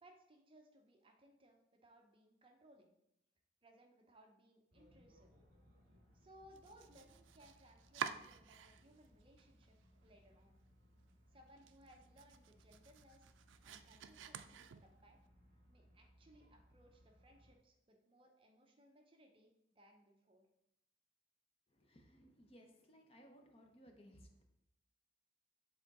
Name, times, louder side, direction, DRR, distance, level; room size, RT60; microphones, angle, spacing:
voice 1, 0.0-2.9 3.6-5.3 6.1-9.8 10.0-10.6 11.3-13.3 13.6-15.2 15.7-20.5, equal, 30° right, 3 dB, 0.6 m, -65 dB
sound 1, 4.7-17.6, equal, 45° right, 1.9 m, -68 dB
Domestic sounds home sounds, 6.5-9.1 9.4-10.1 10.5-10.6 11.0-11.1 11.5-15.2, right 7 dB, 75° right, 0.4 m, -49 dB
voice 2, 21.7-24.4, equal, 30° left, 3 dB, 0.7 m, -62 dB
6.9 x 3.6 x 4.0 m, 0.81 s
head